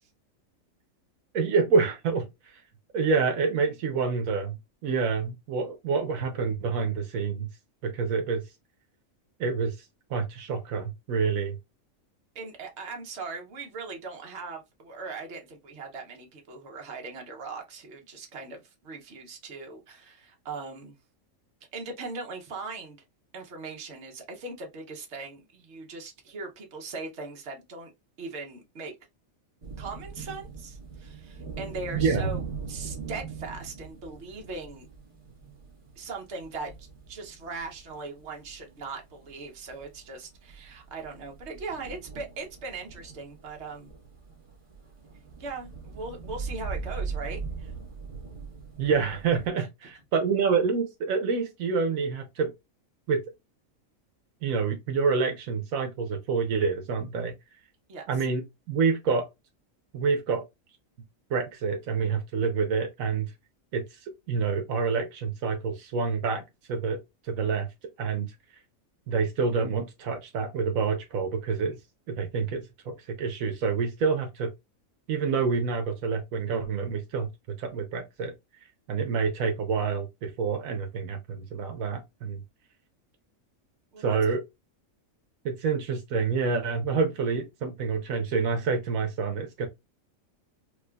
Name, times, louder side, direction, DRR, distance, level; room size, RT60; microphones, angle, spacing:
voice 1, 1.3-2.6 2.9-7.5 7.8-8.4 9.4-9.8 10.1-11.6 32.0-32.3 48.8-52.5 53.1-53.2 54.4-57.3 58.1-58.4 58.7-59.3 59.9-60.5 61.3-63.3 63.7-64.0 64.3-66.4 66.7-67.7 68.0-68.3 69.1-71.8 72.1-74.5 75.1-78.3 78.9-82.4 84.0-84.4 85.4-89.7, right 5 dB, 85° right, 1.1 m, -27 dB
voice 2, 12.3-20.9 21.7-23.0 23.3-27.9 28.2-28.9 29.8-32.4 32.7-34.9 36.0-43.9 45.4-47.7 49.6-49.7 57.9-58.0 83.9-84.2, right 3 dB, 55° right, 1.2 m, -39 dB
sound 1, 29.6-49.5, right 5 dB, 25° right, 1.1 m, -40 dB
4.7 x 2.3 x 2.2 m
omnidirectional pair, 1.4 m